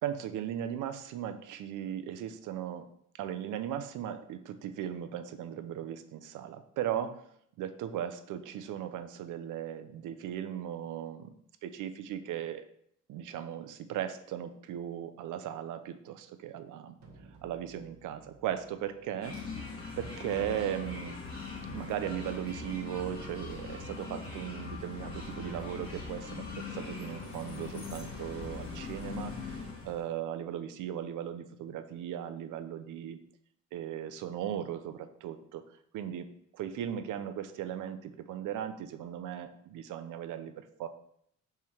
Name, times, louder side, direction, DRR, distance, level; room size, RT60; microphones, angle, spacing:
voice 1, 0.0-2.9 3.2-7.2 7.6-11.3 11.6-12.7 13.1-17.0 17.4-19.3 19.6-21.2 21.7-33.2 33.7-35.6 35.9-36.3 36.5-40.9, right 10 dB, 85° right, 10 dB, 0.7 m, -37 dB
sound 1, 17.0-21.0, right 3 dB, 60° right, 1.4 m, -59 dB
sound 2, 19.2-30.1, left 4 dB, 45° left, 2.1 m, -41 dB
5.6 x 4.5 x 4.6 m, 0.69 s
cardioid pair, 90°, 30 cm